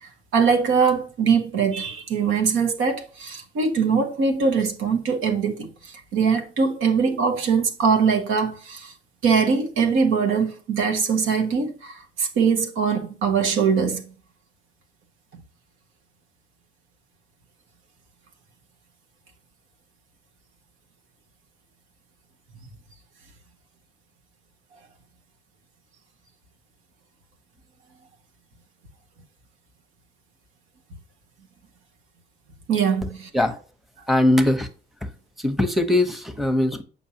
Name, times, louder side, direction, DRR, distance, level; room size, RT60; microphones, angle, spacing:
voice 1, 0.0-8.9 9.2-14.0 32.7-33.3, right 5 dB, 85° right, 1.4 m, -22 dB
voice 2, 34.1-34.7 35.4-36.8, left 1 dB, ahead, 1.0 m, -20 dB
7.2 x 5.7 x 2.9 m
cardioid pair, 90°, 20 cm